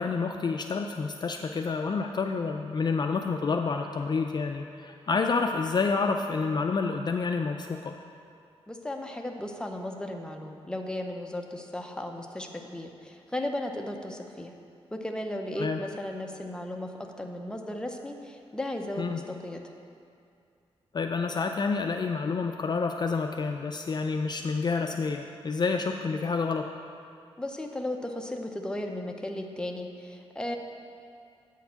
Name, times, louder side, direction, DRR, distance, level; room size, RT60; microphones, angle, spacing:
voice 1, 0.0-7.9 15.6-15.8 19.0-19.2 20.9-26.7, left 4 dB, 40° left, 4 dB, 0.4 m, -29 dB
voice 2, 8.7-14.5 14.9-19.7 27.4-30.6, left 1 dB, 10° left, 3 dB, 0.7 m, -35 dB
8.4 x 4.6 x 6.9 m, 2.4 s
cardioid pair, 85°, 11 cm